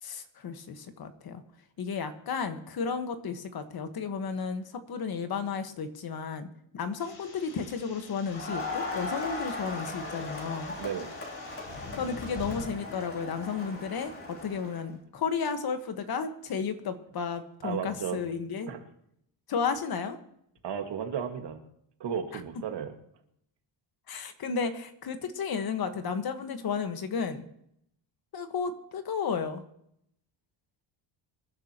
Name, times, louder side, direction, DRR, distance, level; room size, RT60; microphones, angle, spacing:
voice 1, 0.0-1.4 1.8-6.5 6.7-10.7 11.7-18.7 19.5-20.2 22.3-22.4 24.1-27.4 28.3-29.6, left 6 dB, 50° left, 8 dB, 1.5 m, -33 dB
sound 1, 7.0-12.6, left 3 dB, 80° left, 4.7 m, -46 dB
Crowd, 8.3-14.8, left 2 dB, 25° left, 3.1 m, -38 dB
voice 2, 10.8-11.1 17.6-18.2 18.7-18.8 20.6-21.6 22.0-22.9, right 7 dB, 55° right, 5 dB, 2.0 m, -34 dB
26.5 x 11.0 x 3.0 m, 0.73 s
cardioid pair, 140°, 48 cm